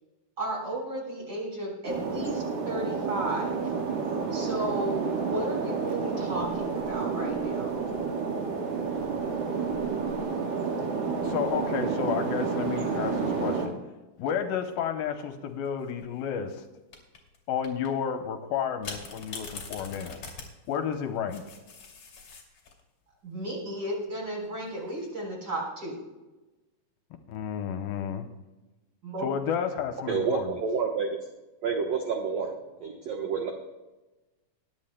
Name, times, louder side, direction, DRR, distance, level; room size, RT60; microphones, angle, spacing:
voice 1, 0.4-3.6 4.3-7.8 23.2-26.0 29.0-29.3, right 1 dB, 30° right, -2 dB, 4.1 m, -34 dB
sound 1, 1.9-13.7, right 5 dB, 85° right, 3.6 m, -30 dB
voice 2, 11.2-13.7 14.2-16.6 17.5-20.2 20.7-21.4 27.3-28.3 29.2-30.5, left 8 dB, 75° left, 6 dB, 2.6 m, -31 dB
sound 2, 15.7-16.1 16.9-17.4 17.6-17.9 18.8-22.8 24.4-24.9, left 4 dB, 40° left, 3.2 m, -43 dB
voice 3, 30.1-31.1 31.6-32.5 32.8-33.5, right 5 dB, 65° right, 2 dB, 1.7 m, -28 dB
21.5 x 10.5 x 2.2 m, 1.1 s
omnidirectional pair, 4.3 m